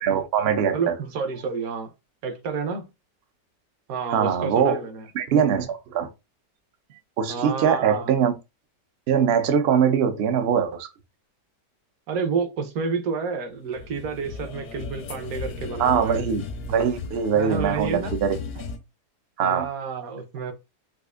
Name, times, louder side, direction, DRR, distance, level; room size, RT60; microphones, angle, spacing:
voice 1, 0.0-0.9 4.1-4.8 5.1-6.1 7.2-8.3 9.1-10.9 15.8-18.6 19.4-19.7, right 7 dB, 85° right, 0.5 m, -22 dB
voice 2, 0.7-1.9 2.2-2.9 3.9-5.1 7.3-8.1 12.1-16.2 17.3-18.1 19.4-20.5, right 5 dB, 65° right, 1.0 m, -29 dB
sound 1, 13.6-18.8, left 4 dB, 80° left, 1.3 m, -35 dB
4.1 x 2.5 x 2.4 m
omnidirectional pair, 1.8 m